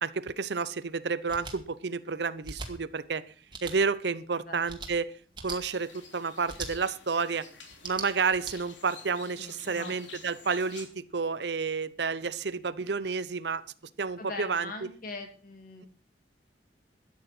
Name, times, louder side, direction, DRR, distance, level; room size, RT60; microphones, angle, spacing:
voice 1, 0.0-3.2 3.6-5.1 5.4-7.5 7.8-13.6 14.0-14.9 15.8-15.9, right 5 dB, 65° right, 16 dB, 0.7 m, -30 dB
sound 1, 1.3-1.6 2.4-2.7 3.5-3.8 4.7-4.9 5.3-5.6 6.5-6.7 7.7-8.5, right 4 dB, 25° right, 2.2 m, -39 dB
sound 2, 5.7-10.9, left 5 dB, 80° left, 3.4 m, -50 dB
voice 2, 9.4-9.9 14.2-15.9, left 3 dB, 50° left, 5 dB, 2.8 m, -42 dB
13.5 x 9.6 x 6.1 m, 0.42 s
head